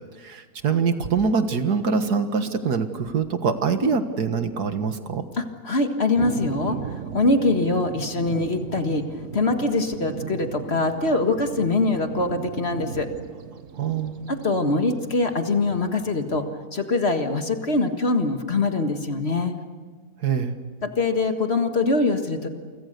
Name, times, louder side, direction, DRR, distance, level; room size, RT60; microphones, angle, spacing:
voice 1, 0.2-5.2 13.7-14.1 20.2-20.6, right 5 dB, 75° right, 8 dB, 2.1 m, -24 dB
voice 2, 5.4-9.1 9.3-13.1 14.3-16.5 16.7-19.6 20.8-22.5, left 3 dB, 40° left, 6 dB, 1.9 m, -23 dB
sound 1, 6.2-16.4, right 7 dB, 55° right, 1.4 m, -37 dB
29.0 x 25.0 x 6.8 m, 1.5 s
omnidirectional pair, 1.7 m